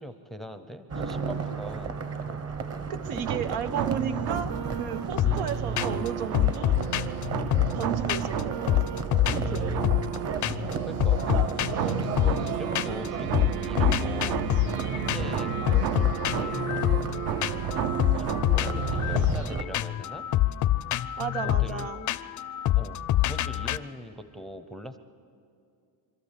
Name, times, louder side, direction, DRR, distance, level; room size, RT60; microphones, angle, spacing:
voice 1, 0.0-1.9 10.8-11.5 11.8-14.4 14.9-17.3 18.2-20.3 21.4-21.9 22.8-23.0 23.3-25.0, equal, ahead, 10 dB, 0.6 m, -41 dB
sound 1, 0.9-19.6, right 4 dB, 35° right, 1.2 m, -35 dB
voice 2, 2.9-6.8 7.7-9.9 15.4-15.8 21.2-22.1, right 8 dB, 85° right, 9 dB, 1.2 m, -34 dB
sound 2, 3.3-19.3, right 9 dB, 50° right, 0.7 m, -32 dB
sound 3, 5.2-5.5 5.8-6.1 6.3-8.4 8.7-10.2 10.4-10.7 11.0-13.1 13.3-23.8, left 14 dB, 45° left, 0.5 m, -26 dB
25.5 x 12.5 x 8.4 m, 2.4 s
cardioid pair, 135°, 44 cm